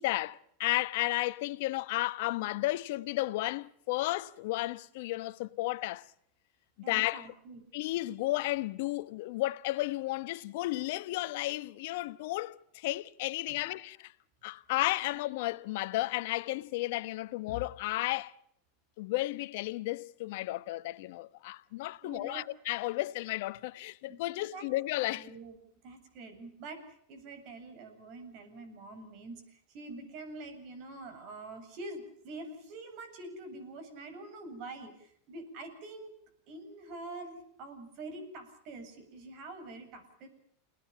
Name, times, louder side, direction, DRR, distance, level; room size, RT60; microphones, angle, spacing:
voice 1, 0.0-6.1 6.9-7.3 7.7-14.1 14.4-18.3 19.0-25.3, left 18 dB, 65° left, 1.1 m, -33 dB
voice 2, 6.8-7.6 13.5-13.6 22.0-22.5 24.1-24.2 24.5-24.7 25.1-25.6 25.8-26.8 27.1-29.4 29.7-36.1 36.5-40.3, right 2 dB, 55° right, 7.8 m, -45 dB
29.5 x 19.5 x 7.1 m
hypercardioid pair, 95°, 0 cm